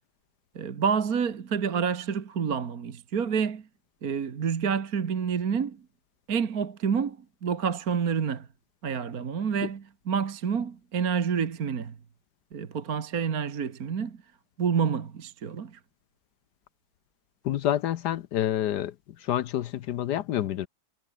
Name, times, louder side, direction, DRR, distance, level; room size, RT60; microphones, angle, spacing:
voice 1, 0.6-3.7 4.0-5.9 6.3-8.5 8.8-12.0 12.5-14.2 14.6-15.8, right 6 dB, 50° right, 1.9 m, -28 dB
voice 2, 17.4-18.9 19.2-20.7, left 11 dB, 65° left, 1.2 m, -28 dB
omnidirectional pair, 2.2 m